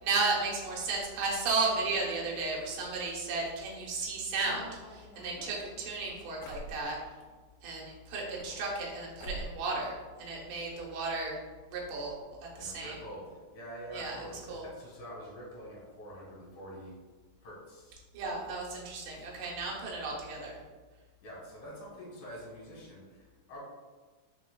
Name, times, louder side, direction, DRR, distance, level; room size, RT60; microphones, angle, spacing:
voice 1, 0.0-7.0 7.6-11.4 11.7-12.2 12.6-13.0 13.9-14.2 14.5-14.6 18.1-20.6, right 3 dB, 80° right, -3 dB, 2.4 m, -34 dB
sound 1, 4.4-7.3 8.1-8.9 9.2-9.7 10.0-10.8 11.0-11.1 11.3-11.4 12.1-12.2 12.5-12.7, right 1 dB, 75° left, 1.8 m, -46 dB
voice 2, 12.6-16.9 17.4-18.0 21.2-23.6, equal, 50° left, -5 dB, 1.8 m, -46 dB
4.6 x 4.3 x 2.2 m, 1.4 s
omnidirectional pair, 3.7 m